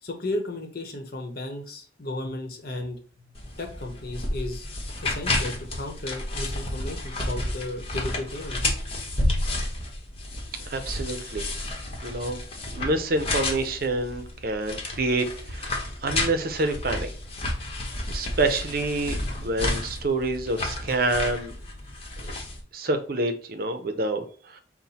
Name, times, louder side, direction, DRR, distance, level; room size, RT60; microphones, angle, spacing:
voice 1, 0.0-3.0 3.6-4.7 5.0-8.7, left 1 dB, 55° left, 4 dB, 0.9 m, -34 dB
sound 1, 3.3-22.6, left 2 dB, 35° left, 1.0 m, -31 dB
voice 2, 10.7-11.5 12.0-12.4 12.7-17.1 18.1-21.5 22.2-22.3 22.7-24.6, right 2 dB, 55° right, 8 dB, 0.6 m, -27 dB
5.9 x 2.1 x 4.1 m, 0.42 s
head